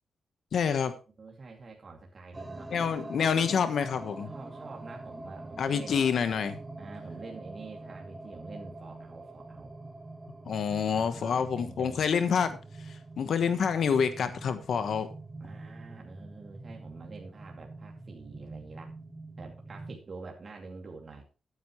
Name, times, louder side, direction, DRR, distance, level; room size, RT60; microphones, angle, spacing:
voice 1, 0.5-0.9 2.7-4.3 5.6-6.6 10.5-12.6 12.9-15.1, left 6 dB, 70° left, 10 dB, 1.3 m, -27 dB
voice 2, 1.2-2.7 4.3-6.0 6.8-9.7 10.9-12.0 15.4-18.9 19.4-21.2, right 3 dB, 40° right, 0 dB, 2.4 m, -46 dB
sound 1, 2.3-20.0, right 2 dB, 20° right, 1.5 m, -45 dB
14.5 x 9.7 x 3.1 m, 0.34 s
cardioid pair, 110°, 0 cm